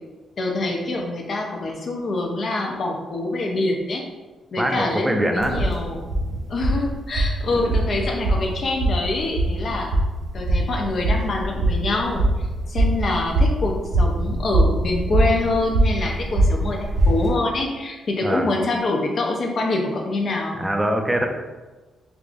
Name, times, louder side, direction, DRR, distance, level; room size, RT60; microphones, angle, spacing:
voice 1, 0.4-4.0 4.5-6.1 6.5-9.9 10.3-12.2 12.7-20.7, left 2 dB, 50° left, 1 dB, 0.5 m, -25 dB
voice 2, 4.6-5.7 18.2-18.5 20.5-21.3, right 1 dB, 10° right, 3 dB, 0.4 m, -23 dB
sound 1, 5.4-17.3, right 1 dB, 85° right, 1.2 m, -22 dB
4.6 x 2.4 x 2.5 m, 1.2 s
cardioid pair, 100°, 0 cm